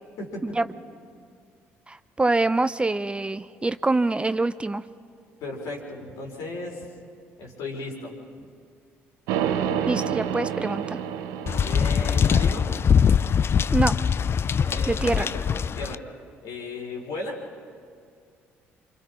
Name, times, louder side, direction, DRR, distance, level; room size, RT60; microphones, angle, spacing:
voice 1, 0.2-0.6 5.4-6.9 7.4-8.5 11.6-12.7 14.6-16.0 16.4-17.4, left 2 dB, 65° left, 0 dB, 4.4 m, -35 dB
voice 2, 1.9-4.8 9.9-11.0 13.7-14.0 14.9-15.3, right 2 dB, 15° right, 13 dB, 0.6 m, -25 dB
sound 1, 9.3-13.4, right 8 dB, 70° right, 1.0 m, -29 dB
sound 2, 11.5-16.0, left 7 dB, 40° left, 0.4 m, -22 dB
28.0 x 25.0 x 4.3 m, 2.2 s
hypercardioid pair, 50°, 6 cm